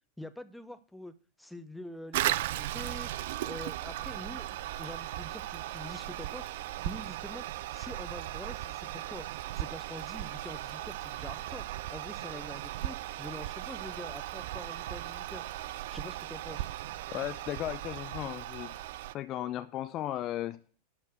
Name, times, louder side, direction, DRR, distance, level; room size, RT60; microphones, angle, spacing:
voice 1, 0.2-1.1 1.4-3.1 3.4-4.5 4.8-7.4 7.7-9.3 9.5-15.4 15.9-16.7, left 1 dB, ahead, 0.8 m, -45 dB
Toilet flush, 2.1-19.1, right 14 dB, 55° right, 0.4 m, -37 dB
voice 2, 17.1-18.7 19.1-20.6, left 13 dB, 35° left, 0.7 m, -35 dB
12.0 x 4.5 x 6.7 m
figure-of-eight pair, 90°, 0 cm